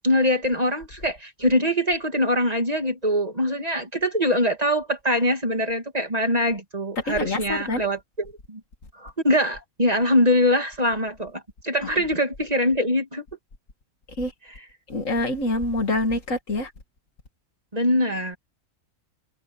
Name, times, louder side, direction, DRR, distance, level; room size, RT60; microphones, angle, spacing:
voice 1, 0.0-8.6 9.0-13.2 17.7-18.4, left 1 dB, 30° right, 2.5 m, -23 dB
voice 2, 7.0-7.9 14.2-14.3 14.9-16.7, left 2 dB, 65° left, 2.5 m, -26 dB
omnidirectional pair, 1.5 m